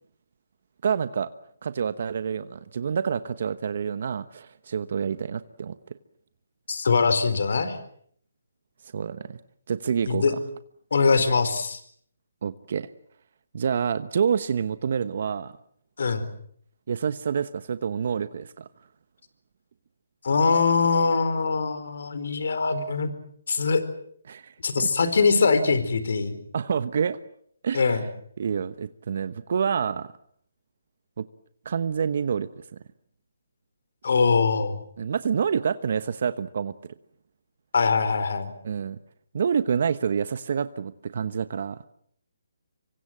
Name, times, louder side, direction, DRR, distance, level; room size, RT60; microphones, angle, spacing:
voice 1, 0.8-1.3 1.6-5.8 8.9-9.4 9.7-10.4 12.4-12.9 13.5-15.5 16.9-18.7 24.3-24.9 26.5-27.2 27.6-28.0 28.4-30.1 31.2-31.3 31.6-32.5 35.0-36.7 38.6-39.0 39.3-41.8, right 7 dB, 55° right, 13 dB, 1.1 m, -27 dB
voice 2, 6.7-7.8 10.1-10.3 10.9-11.8 16.0-16.3 20.2-23.1 23.5-23.8 24.6-26.4 27.7-28.0 34.0-34.8 37.7-38.5, left 4 dB, 65° left, 12 dB, 4.3 m, -22 dB
27.0 x 24.5 x 7.6 m, 0.65 s
hypercardioid pair, 155°, 0 cm